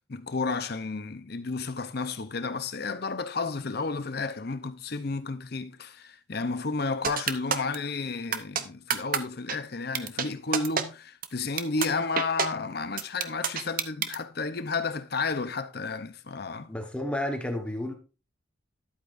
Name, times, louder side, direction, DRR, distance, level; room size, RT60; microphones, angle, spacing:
voice 1, 0.1-16.7, left 4 dB, 50° left, 0.7 m, -32 dB
sound 1, 7.0-7.8 8.3-8.6 8.9-9.2 9.5-9.6 9.9-10.3 10.5-10.8 11.2-11.3 11.6-11.9 12.2-12.5 13.0-14.2, right 7 dB, 45° right, 0.7 m, -26 dB
voice 2, 16.7-17.9, left 1 dB, 5° left, 1.2 m, -31 dB
11.5 x 8.3 x 2.6 m
head